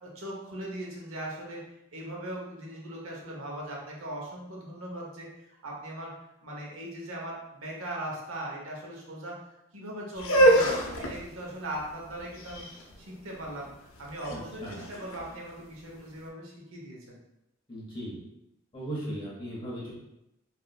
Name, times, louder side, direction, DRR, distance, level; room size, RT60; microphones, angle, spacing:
voice 1, 0.0-1.6 1.9-6.1 6.4-9.4 9.7-10.7 11.0-12.7 13.0-17.2, right 1 dB, 90° right, -2 dB, 0.9 m, -39 dB
sound 1, 10.1-16.1, right 1 dB, 85° left, 0.5 m, -27 dB
voice 2, 14.3-14.8 17.7-18.2 18.7-19.9, right 1 dB, 25° left, -6 dB, 0.7 m, -37 dB
3.4 x 2.6 x 2.3 m, 0.87 s
head